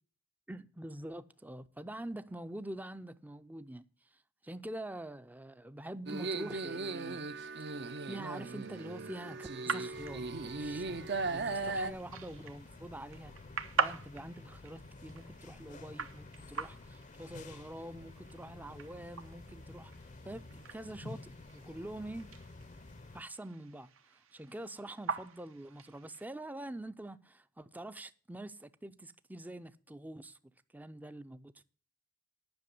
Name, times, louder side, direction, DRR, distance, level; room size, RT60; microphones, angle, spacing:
voice 1, 0.5-3.9 4.1-7.2 8.1-13.3 13.8-19.9 20.2-22.3 23.1-30.4 30.7-31.6, right 1 dB, 10° right, 0.4 m, -45 dB
sound 1, 6.1-11.9, right 3 dB, 55° right, 0.6 m, -38 dB
sound 2, 6.7-26.3, right 5 dB, 75° right, 1.0 m, -43 dB
sound 3, 9.9-23.2, left 2 dB, 35° left, 0.6 m, -51 dB
10.5 x 6.0 x 8.1 m
head